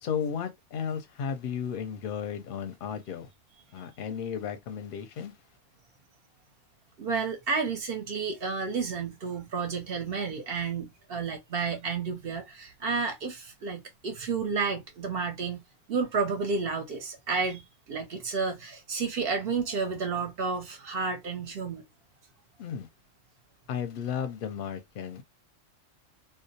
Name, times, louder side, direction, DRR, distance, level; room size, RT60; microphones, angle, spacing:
voice 1, 0.0-3.3 3.7-5.3 22.6-22.9 23.7-25.2, left 7 dB, 60° left, 0.6 m, -34 dB
voice 2, 7.0-15.6 15.9-21.9, right 5 dB, 60° right, 0.7 m, -31 dB
2.3 x 2.0 x 2.6 m
omnidirectional pair, 1.3 m